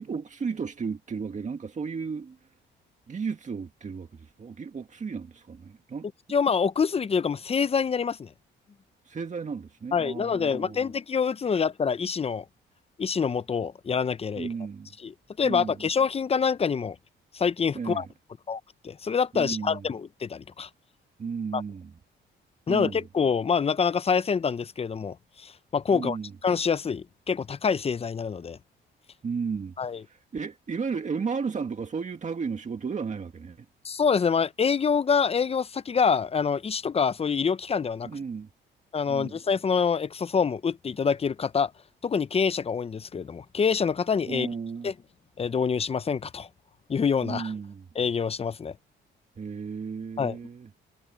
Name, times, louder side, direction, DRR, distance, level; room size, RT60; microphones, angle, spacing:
voice 1, 0.0-2.4 3.1-6.1 9.0-10.9 11.5-11.6 14.4-14.9 15.4-15.8 17.7-18.1 19.3-19.9 21.2-21.9 22.7-23.0 25.9-26.3 29.2-29.7 30.1-33.7 38.0-38.5 39.1-39.4 44.3-44.9 47.2-47.9 49.4-50.7, right 5 dB, 35° right, 1.9 m, -34 dB
voice 2, 6.3-8.3 9.9-12.4 13.0-14.5 15.0-15.1 15.4-17.0 17.3-18.1 18.5-20.7 21.5-21.6 22.7-26.2 26.4-28.6 29.8-30.0 33.8-38.1 38.9-41.7 42.0-44.5 44.8-44.9 45.4-46.5 46.9-47.5 48.0-48.7 50.2-50.4, left 6 dB, 30° left, 0.7 m, -26 dB
cardioid pair, 90°, 20 cm